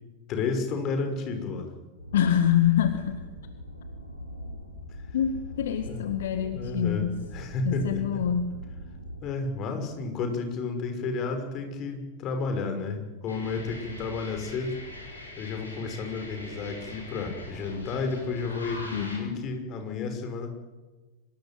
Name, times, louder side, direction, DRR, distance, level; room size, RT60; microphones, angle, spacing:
voice 1, 0.3-1.7 5.9-6.0 6.4-8.2 9.2-14.8 15.1-20.5, left 4 dB, 35° left, 6 dB, 5.9 m, -32 dB
sound 1, 2.0-9.2, equal, 90° right, 5.4 m, -41 dB
voice 2, 2.1-3.3 5.1-7.3 7.6-8.6 18.9-19.5, left 9 dB, 60° left, 8 dB, 1.8 m, -26 dB
sound 2, 13.3-19.2, left 1 dB, 80° left, 7.4 m, -42 dB
25.0 x 21.5 x 9.4 m, 1.2 s
figure-of-eight pair, 90°, 0 cm